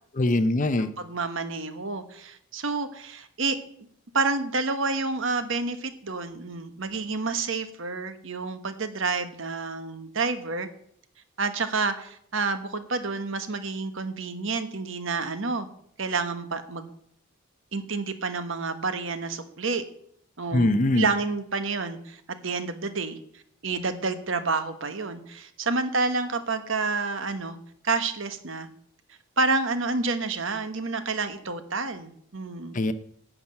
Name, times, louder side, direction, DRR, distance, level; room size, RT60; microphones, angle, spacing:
voice 1, 0.2-0.9 20.5-21.1 32.7-32.9, left 2 dB, 35° left, 13 dB, 0.6 m, -22 dB
voice 2, 0.8-3.6 4.1-10.7 11.4-15.7 16.0-16.9 17.7-19.8 20.4-20.7 20.9-23.2 23.6-27.6 27.8-28.7 29.4-32.8, right 3 dB, 60° right, 10 dB, 1.2 m, -29 dB
11.0 x 6.0 x 8.7 m, 0.66 s
head